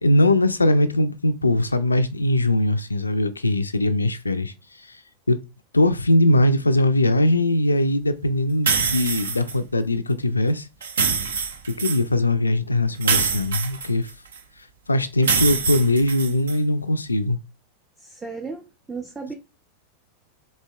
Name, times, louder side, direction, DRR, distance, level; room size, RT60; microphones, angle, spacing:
voice 1, 0.0-5.0 5.3-5.4 5.7-10.7 11.8-14.1 14.9-17.4, left 1 dB, 80° left, 0.3 m, -21 dB
sound 1, 8.7-9.5 10.8-12.0 13.0-14.4 15.2-16.6, right 5 dB, 65° right, 0.5 m, -24 dB
voice 2, 18.0-19.3, right 4 dB, 10° right, 0.5 m, -35 dB
4.1 x 2.8 x 2.2 m
figure-of-eight pair, 90°, 0 cm